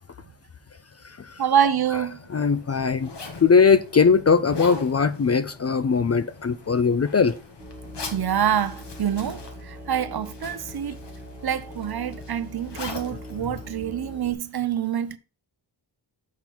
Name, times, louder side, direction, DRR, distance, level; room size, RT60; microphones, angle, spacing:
voice 1, 1.4-2.2 8.1-11.0 11.4-15.2, right 9 dB, 55° right, 0.6 m, -26 dB
Zipper (clothing), 1.8-14.5, left 4 dB, 60° left, 1.6 m, -42 dB
voice 2, 2.3-3.1 3.4-7.4, left 5 dB, 35° left, 0.4 m, -20 dB
Musical instrument, 7.6-14.3, equal, 5° right, 2.1 m, -42 dB
7.3 x 5.3 x 4.5 m
wide cardioid pair, 130°, 46 cm